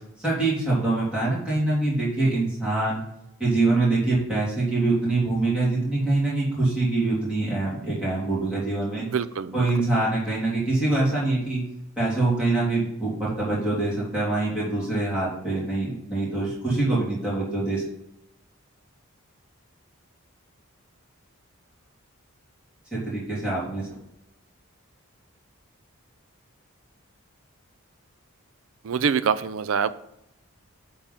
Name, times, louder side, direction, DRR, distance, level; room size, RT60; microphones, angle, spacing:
voice 1, 0.2-3.0 3.4-9.1 9.5-11.6 12.0-17.8 22.9-24.0, right 2 dB, 5° right, -8 dB, 3.2 m, -24 dB
voice 2, 9.0-9.7 28.8-29.9, right 6 dB, 65° right, 14 dB, 0.4 m, -25 dB
8.0 x 3.8 x 5.6 m, 0.83 s
head